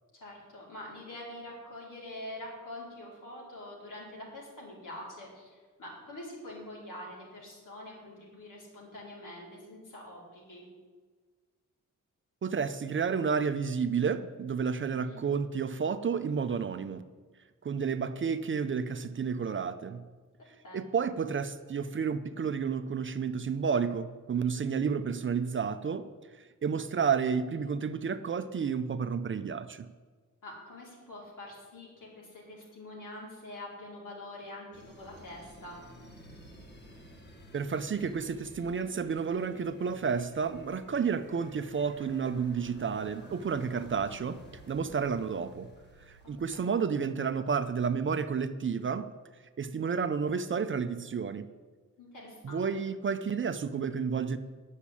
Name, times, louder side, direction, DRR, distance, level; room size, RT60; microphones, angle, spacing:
voice 1, 0.1-10.7 14.9-15.2 20.4-20.8 30.4-35.8 46.2-46.8 52.0-52.7, left 1 dB, 75° left, -4 dB, 4.6 m, -45 dB
voice 2, 12.4-17.0 17.6-20.0 20.7-26.1 26.3-29.9 37.5-44.4 44.7-45.7 46.0-49.1 49.6-51.5 52.4-54.4, right 6 dB, 40° right, 10 dB, 0.5 m, -31 dB
sound 1, 34.7-47.0, equal, 35° left, 1.3 m, -53 dB
10.0 x 7.2 x 8.4 m, 1.4 s
wide cardioid pair, 160°, 32 cm